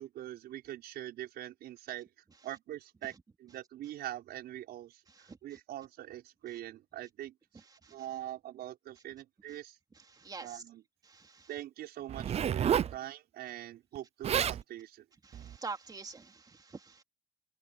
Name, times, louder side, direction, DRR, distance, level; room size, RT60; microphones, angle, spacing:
voice 1, 0.0-2.1 2.4-3.1 3.4-7.6 7.9-9.8 10.4-10.8 11.5-15.1, right 13 dB, 70° right, 5.3 m, -43 dB
voice 2, 9.9-10.6 11.0-11.5 15.2-17.0, right 4 dB, 25° right, 2.9 m, -46 dB
Zipper (clothing), 12.1-13.0 13.9-14.0 14.2-14.6 15.3-15.6, right 9 dB, 40° right, 0.6 m, -30 dB
cardioid pair, 110°, 17 cm